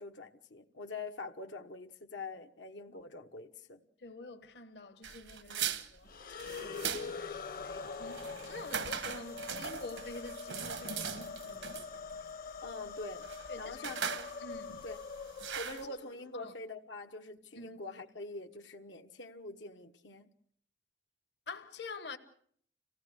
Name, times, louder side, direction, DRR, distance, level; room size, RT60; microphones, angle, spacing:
voice 1, 0.0-3.8 5.5-5.7 12.6-13.3 13.6-14.3 14.8-15.0 15.6-20.3, left 3 dB, 90° left, 1.2 m, -45 dB
voice 2, 4.0-11.9 13.5-13.9 14.4-14.8 15.9-16.0 16.3-16.5 17.6-17.8 21.5-22.2, left 3 dB, 70° left, 1.2 m, -47 dB
sound 1, 5.0-15.9, right 7 dB, 90° right, 1.2 m, -40 dB
sound 2, 6.0-16.3, left 5 dB, 50° left, 0.8 m, -44 dB
26.5 x 17.0 x 6.4 m
head